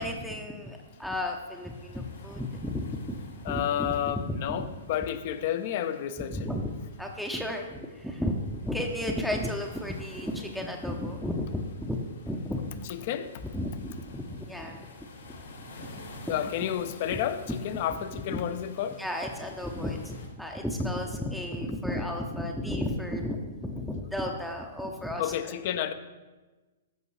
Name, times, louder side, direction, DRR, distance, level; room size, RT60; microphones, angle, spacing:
voice 1, 0.0-3.2 3.5-4.7 6.3-12.6 13.5-14.9 15.6-15.7 18.1-18.4 19.0-25.5, left 1 dB, ahead, 1 dB, 0.6 m, -33 dB
sound 1, 0.6-20.3, left 1 dB, 65° left, 1.8 m, -51 dB
voice 2, 3.4-6.5 12.9-13.3 16.3-19.0 25.2-25.9, left 10 dB, 45° left, 11 dB, 0.5 m, -31 dB
13.5 x 5.2 x 3.2 m, 1.2 s
figure-of-eight pair, 110°, 0 cm